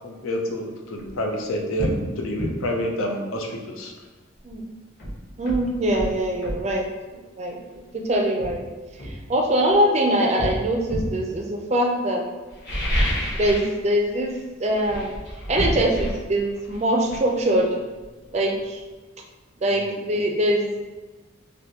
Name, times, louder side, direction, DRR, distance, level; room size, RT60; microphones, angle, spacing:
voice 1, 0.0-3.9 19.7-20.0, equal, 85° left, 2 dB, 0.5 m, -28 dB
sound 1, 1.1-1.2 1.8-2.0 2.4-2.6 4.5-4.6 5.0-6.7 7.7-7.9 8.4-9.8 10.4-11.2 12.5-13.8 14.0-14.4 14.7-18.3 18.6-18.7, equal, 50° left, 1.2 m, -29 dB
voice 2, 5.4-6.9 7.1-7.6 7.9-8.6 9.0-12.2 13.4-14.3 14.6-15.1 15.5-17.7 18.3-18.8 19.6-20.9, right 1 dB, 30° right, 1 dB, 0.4 m, -23 dB
3.4 x 2.5 x 2.8 m, 1.3 s
head